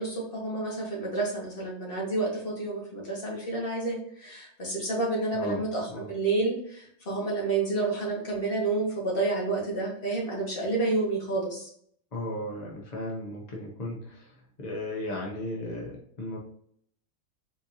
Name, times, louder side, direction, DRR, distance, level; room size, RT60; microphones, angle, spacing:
voice 1, 0.0-11.7, right 3 dB, 30° left, -4 dB, 1.5 m, -29 dB
voice 2, 5.3-6.1 12.1-16.4, left 1 dB, 50° left, -3 dB, 0.4 m, -36 dB
4.3 x 4.1 x 2.6 m, 0.65 s
omnidirectional pair, 2.3 m